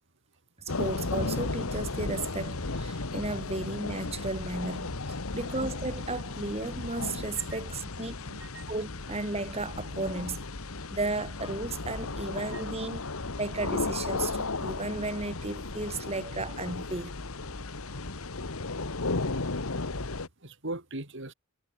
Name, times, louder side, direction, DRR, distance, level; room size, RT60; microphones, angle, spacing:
voice 1, 0.6-8.1 8.7-10.5 10.9-13.0 13.4-17.2, right 2 dB, 30° right, 2.3 m, -34 dB
sound 1, 0.7-20.3, left 3 dB, 75° left, 1.5 m, -35 dB
voice 2, 7.4-7.9 8.2-8.7 12.5-12.9 17.7-17.8 20.1-21.3, right 2 dB, 60° right, 4.0 m, -42 dB
head